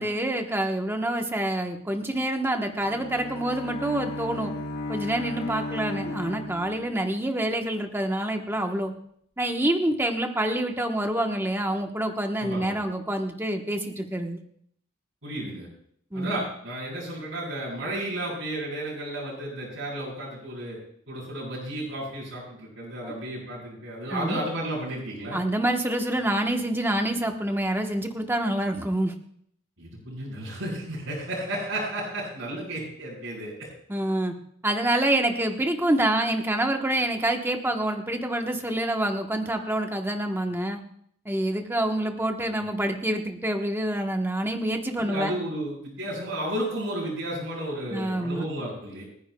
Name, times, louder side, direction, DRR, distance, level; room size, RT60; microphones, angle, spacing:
voice 1, 0.0-4.5 4.9-8.9 9.4-14.4 16.1-16.4 23.0-23.1 24.1-24.4 25.3-29.1 33.9-34.4 34.6-40.8 41.2-45.3 47.9-48.4, right 1 dB, 10° right, 3 dB, 1.1 m, -27 dB
Bowed string instrument, 2.5-7.2, left 2 dB, 50° left, 1.3 m, -36 dB
voice 2, 12.4-12.8 15.2-15.7 16.1-20.8 21.1-25.4 29.8-33.7 45.0-49.0, right 1 dB, 75° right, -8 dB, 6.1 m, -33 dB
29.0 x 10.0 x 2.3 m, 0.65 s
head